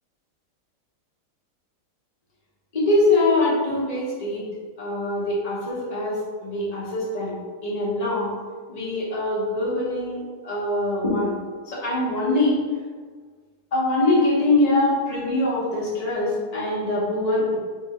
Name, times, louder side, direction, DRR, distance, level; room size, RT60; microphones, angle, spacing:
voice 1, 2.7-4.5 4.8-8.3 8.7-11.4 11.6-12.6 13.7-17.6, left 2 dB, 30° left, -7 dB, 0.7 m, -23 dB
3.4 x 3.0 x 4.2 m, 1.5 s
omnidirectional pair, 2.4 m